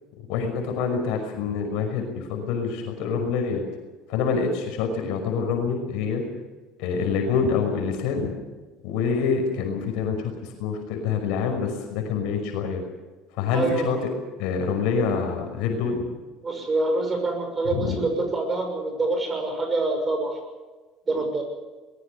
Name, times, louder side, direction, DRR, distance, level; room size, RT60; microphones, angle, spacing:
voice 1, 0.3-3.6 4.1-6.2 6.8-8.3 8.8-12.8 13.4-14.1 14.4-16.0 17.7-18.0, left 5 dB, 70° left, 3 dB, 5.7 m, -26 dB
voice 2, 13.5-14.0 16.4-20.4 21.1-21.4, right 2 dB, 20° right, 4 dB, 6.3 m, -26 dB
22.5 x 20.5 x 6.8 m, 1.3 s
cardioid pair, 150°, 0 cm